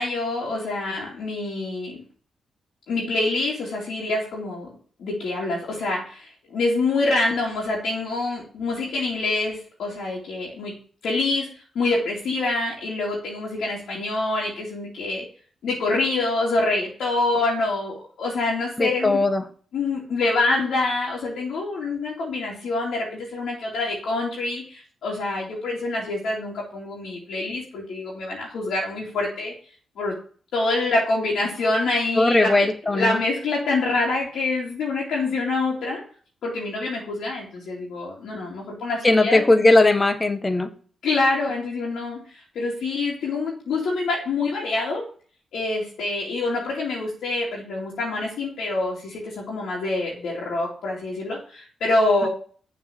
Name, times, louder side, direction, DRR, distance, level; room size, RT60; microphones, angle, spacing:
voice 1, 0.0-2.0 2.9-10.7 11.0-11.5 11.7-15.3 15.6-19.2 19.7-29.5 30.0-30.2 30.5-36.0 36.4-39.4 41.0-45.1 45.5-52.3, left 2 dB, 80° left, -5 dB, 2.8 m, -26 dB
voice 2, 18.8-19.4 32.1-33.2 39.0-40.7 52.2-52.3, left 2 dB, 25° left, 10 dB, 1.3 m, -18 dB
7.0 x 4.7 x 7.0 m, 0.44 s
cardioid pair, 65°, 0 cm